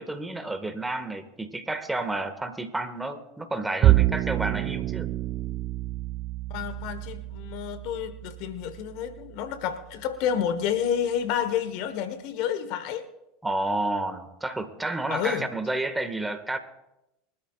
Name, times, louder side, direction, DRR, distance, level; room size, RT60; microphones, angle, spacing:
voice 1, 0.0-5.1 13.4-16.6, right 2 dB, 10° right, 1.8 m, -30 dB
Bowed string instrument, 3.8-10.3, right 16 dB, 45° right, 0.4 m, -28 dB
voice 2, 6.5-13.1 15.1-15.5, left 9 dB, 60° left, 1.4 m, -29 dB
24.0 x 13.0 x 2.5 m
hypercardioid pair, 85°, 0 cm